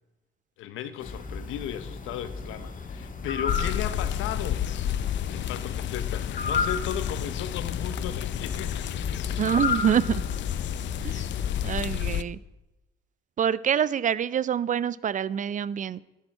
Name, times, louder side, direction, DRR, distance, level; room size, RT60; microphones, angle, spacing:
voice 1, 0.6-4.7 5.3-9.4, left 10 dB, 90° left, 12 dB, 0.8 m, -36 dB
sound 1, 1.0-11.7, left 4 dB, 40° left, 1.6 m, -34 dB
sound 2, 3.5-12.2, left 11 dB, 65° left, 0.5 m, -31 dB
voice 2, 9.4-10.3 11.0-11.2 11.6-12.4 13.4-16.0, right 8 dB, 40° right, 20 dB, 0.4 m, -26 dB
12.5 x 10.5 x 4.4 m, 1.0 s
cardioid pair, 90°, 20 cm